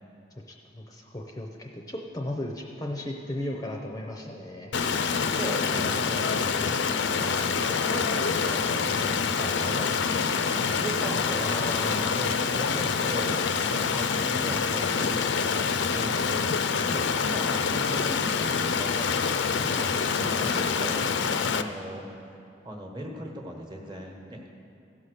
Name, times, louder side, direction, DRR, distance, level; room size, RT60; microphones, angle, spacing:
voice 1, 0.5-4.7 9.4-9.5 11.4-12.2 16.9-17.3, left 1 dB, 20° left, 1 dB, 0.6 m, -36 dB
Stream, 4.7-21.6, left 5 dB, 80° left, 0.5 m, -26 dB
voice 2, 5.1-6.7 7.2-11.5 11.9-13.4 13.7-16.6 17.3-19.3 19.6-22.1 22.6-24.5, right 1 dB, 25° right, 1 dB, 1.2 m, -38 dB
16.0 x 5.6 x 6.6 m, 2.6 s
head